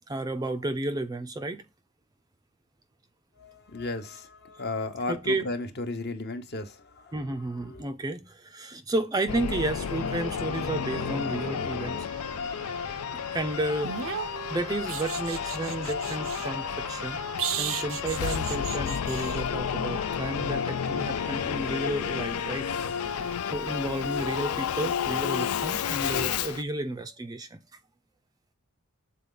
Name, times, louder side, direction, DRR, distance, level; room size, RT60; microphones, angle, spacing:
voice 1, 0.1-1.6 5.1-5.5 7.1-12.1 13.3-17.2 17.6-22.7 23.4-27.6, right 2 dB, 15° right, 0.4 m, -32 dB
voice 2, 3.4-7.2 7.5-7.9, left 2 dB, 45° left, 0.9 m, -35 dB
Singing / Musical instrument, 9.3-26.6, left 8 dB, 80° left, 0.4 m, -31 dB
sound 1, 9.8-23.4, right 4 dB, 90° right, 0.9 m, -45 dB
sound 2, 13.8-16.5 17.4-19.4 22.1-22.2, right 9 dB, 60° right, 0.6 m, -35 dB
6.7 x 4.0 x 3.8 m
head